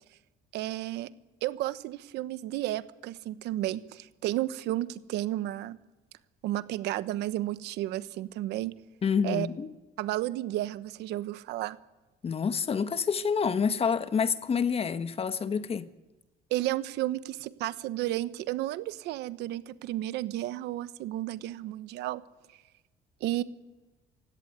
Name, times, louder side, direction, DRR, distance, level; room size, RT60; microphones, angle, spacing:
voice 1, 0.5-1.1 1.4-5.8 6.4-8.7 9.2-9.5 10.0-11.8 16.5-22.2 23.2-23.4, right 15 dB, 85° right, 1.1 m, -32 dB
voice 2, 9.0-9.7 12.2-15.9, left 6 dB, 35° left, 1.3 m, -28 dB
28.5 x 16.5 x 9.5 m
cardioid pair, 110°, 17 cm